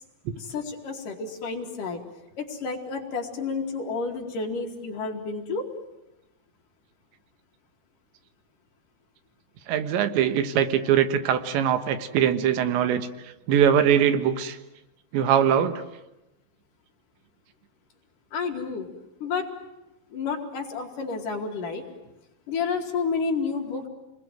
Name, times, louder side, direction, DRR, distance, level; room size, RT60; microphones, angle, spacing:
voice 1, 0.4-2.0 2.4-5.7 18.3-18.9 19.2-19.5 20.1-21.8 22.5-23.9, left 4 dB, 55° left, 1 dB, 3.7 m, -30 dB
voice 2, 9.7-13.1 13.5-14.6 15.1-15.8, right 9 dB, 80° right, 9 dB, 3.6 m, -22 dB
29.0 x 21.0 x 9.2 m, 0.95 s
omnidirectional pair, 5.1 m